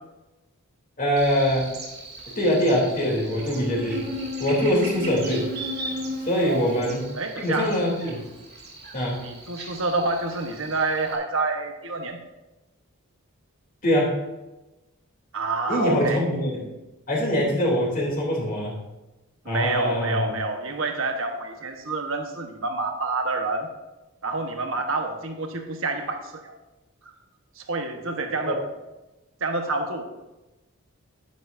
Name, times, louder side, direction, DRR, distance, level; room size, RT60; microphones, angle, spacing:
voice 1, 1.0-1.7 2.4-4.0 4.4-5.5 6.3-7.1 7.4-8.3 8.9-9.2 13.8-14.2 15.7-16.7 17.1-18.7 19.4-20.3 28.4-28.5, equal, 40° left, -4 dB, 3.0 m, -23 dB
Buzz, 1.2-11.2, equal, 45° right, 2.3 m, -36 dB
voice 2, 7.2-7.7 9.2-12.2 15.3-16.2 19.4-23.7 24.2-26.6 27.6-28.6 29.4-30.0, right 3 dB, 65° right, 4 dB, 1.2 m, -28 dB
10.5 x 10.5 x 2.6 m, 1.0 s
head